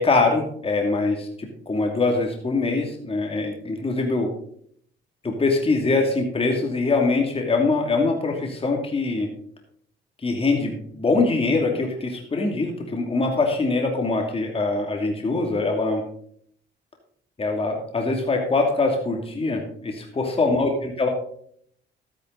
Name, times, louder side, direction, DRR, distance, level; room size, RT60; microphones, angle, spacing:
voice 1, 0.0-4.3 5.2-9.3 10.2-16.0 17.4-21.1, left 3 dB, 30° left, 2 dB, 2.5 m, -23 dB
13.0 x 9.8 x 3.9 m, 0.63 s
cardioid pair, 90°, 20 cm